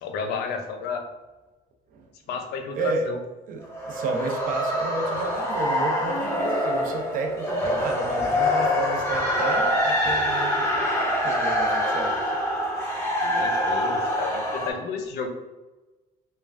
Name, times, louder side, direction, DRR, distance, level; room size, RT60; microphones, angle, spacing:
voice 1, 0.0-1.0 2.3-3.2 13.2-15.3, left 5 dB, 75° left, 5 dB, 0.5 m, -32 dB
voice 2, 2.8-3.1 3.5-12.4, right 3 dB, 55° right, 3 dB, 0.5 m, -32 dB
sound 1, 3.6-14.7, left 1 dB, 15° left, 0.9 m, -25 dB
3.1 x 2.2 x 2.4 m, 1.1 s
cardioid pair, 110°, 17 cm